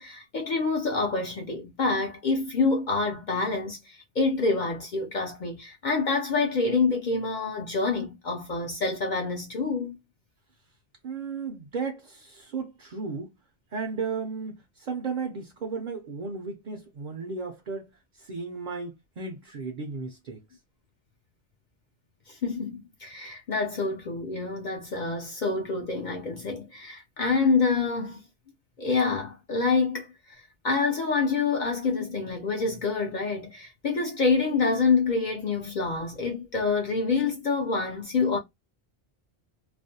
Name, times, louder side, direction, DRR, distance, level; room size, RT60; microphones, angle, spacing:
voice 1, 0.0-10.0 22.3-28.2 28.8-38.4, left 4 dB, 55° left, 0.6 m, -27 dB
voice 2, 11.0-13.4 13.7-20.6, right 4 dB, 55° right, 0.6 m, -35 dB
2.4 x 2.1 x 2.6 m
omnidirectional pair, 1.1 m